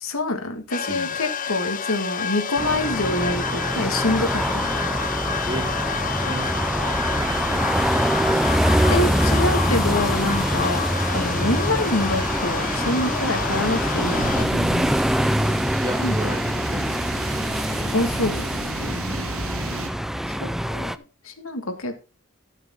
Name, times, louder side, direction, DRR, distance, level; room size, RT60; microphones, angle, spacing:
voice 1, 0.0-4.7 8.9-10.8 11.1-14.6 16.0-16.3 17.9-18.4 20.3-20.9 21.2-22.0, left 2 dB, 70° left, 6 dB, 2.0 m, -26 dB
sound 1, 0.7-14.5, left 7 dB, 40° left, 0.6 m, -29 dB
sound 2, 2.6-21.0, equal, ahead, 0.4 m, -24 dB
sound 3, 3.9-19.9, right 3 dB, 75° right, 2.3 m, -36 dB
voice 2, 6.2-6.6 7.1-7.9 15.8-17.0 18.9-19.1, right 1 dB, 20° right, 4 dB, 2.4 m, -33 dB
12.0 x 8.2 x 3.9 m, 0.30 s
head